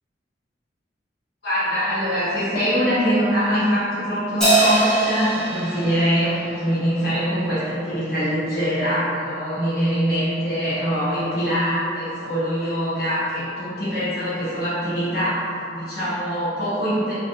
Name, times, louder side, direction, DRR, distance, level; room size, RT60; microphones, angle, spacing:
voice 1, 1.4-17.1, equal, 55° left, -15 dB, 1.1 m, -23 dB
Crash cymbal, 4.4-7.1, right 2 dB, 5° left, 0.9 m, -22 dB
3.6 x 2.6 x 2.7 m, 2.6 s
head